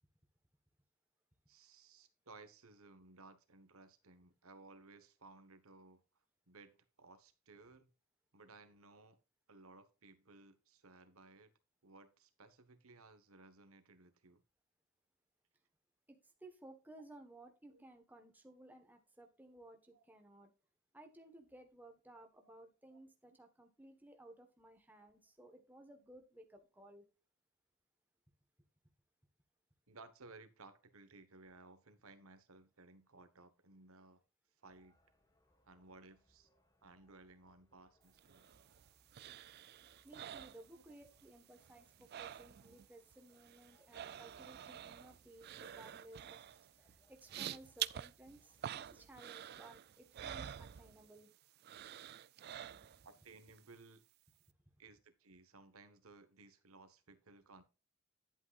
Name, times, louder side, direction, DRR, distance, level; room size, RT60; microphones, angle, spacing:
voice 1, 1.5-6.0 6.5-7.9 8.3-9.2 9.5-11.5 11.8-14.4 17.7-17.8 19.9-20.0 22.1-22.6 22.9-23.0 23.3-23.4 29.9-34.2 34.6-35.0 35.6-36.5 36.8-38.5 40.7-40.9 49.5-49.7 53.0-54.0 54.8-57.6, right 3 dB, 80° right, 1.3 m, -60 dB
voice 2, 16.1-20.5 20.9-27.0 40.0-51.3, right 1 dB, 10° right, 1.3 m, -58 dB
sound 1, 34.6-50.1, left 1 dB, 15° left, 1.3 m, -75 dB
sound 2, 38.2-41.2 41.5-42.9 43.1-51.3 51.6-53.2 53.6-53.7, right 10 dB, 50° right, 0.3 m, -48 dB
11.0 x 8.3 x 2.5 m
head